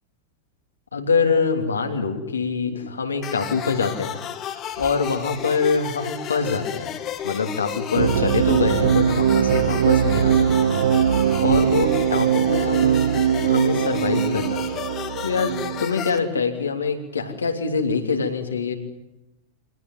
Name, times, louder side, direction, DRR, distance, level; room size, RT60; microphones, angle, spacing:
voice 1, 0.9-4.2 4.8-6.9 7.2-10.7 11.4-13.1 13.4-14.6 15.2-18.7, left 5 dB, 75° left, 4 dB, 3.3 m, -24 dB
sound 1, 3.2-16.2, left 10 dB, 35° left, 2.1 m, -33 dB
sound 2, 4.5-5.9 7.0-7.7 9.8-10.0 11.3-13.3, right 2 dB, 5° right, 2.1 m, -45 dB
sound 3, 8.0-15.9, right 9 dB, 60° right, 1.0 m, -20 dB
25.5 x 19.0 x 9.6 m, 0.97 s
figure-of-eight pair, 90°, 0 cm